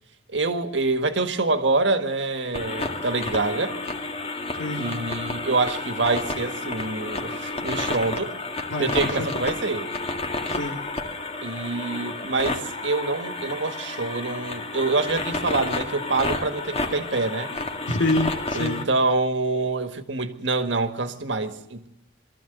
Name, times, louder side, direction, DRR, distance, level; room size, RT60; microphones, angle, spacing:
voice 1, 0.3-3.8 4.8-8.3 8.8-9.9 11.4-17.5 18.5-21.9, right 3 dB, 75° right, 1.7 m, -26 dB
sound 1, 2.5-18.8, left 2 dB, 35° left, 1.9 m, -31 dB
voice 2, 4.5-4.9 8.7-9.4 10.5-10.8 17.9-18.9, left 2 dB, 80° left, 2.1 m, -27 dB
23.0 x 14.0 x 8.1 m
head